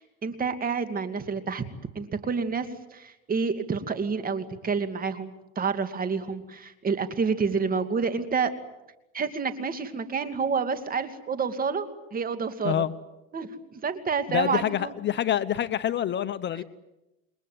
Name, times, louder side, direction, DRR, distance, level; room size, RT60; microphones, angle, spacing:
voice 1, 0.0-1.6 1.9-8.5 9.1-12.8 13.3-14.9, right 5 dB, 30° right, 10 dB, 2.5 m, -29 dB
voice 2, 14.3-16.6, left 10 dB, 35° left, 14 dB, 0.9 m, -26 dB
28.5 x 22.0 x 9.4 m, 0.99 s
cardioid pair, 120°, 30 cm